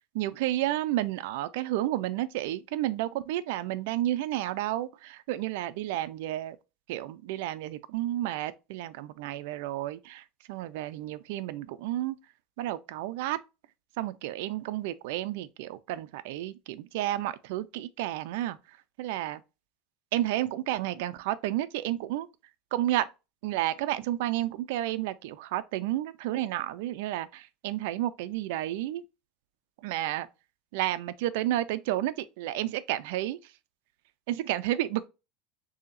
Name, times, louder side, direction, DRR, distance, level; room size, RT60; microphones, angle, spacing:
voice 1, 0.1-6.6 6.9-12.2 12.6-13.4 14.0-18.6 19.0-19.4 20.1-22.3 22.7-23.1 23.4-29.0 29.8-30.3 30.7-33.4 34.3-35.1, right 14 dB, 65° right, 0.4 m, -31 dB
6.7 x 2.8 x 2.5 m
cardioid pair, 175°, 0 cm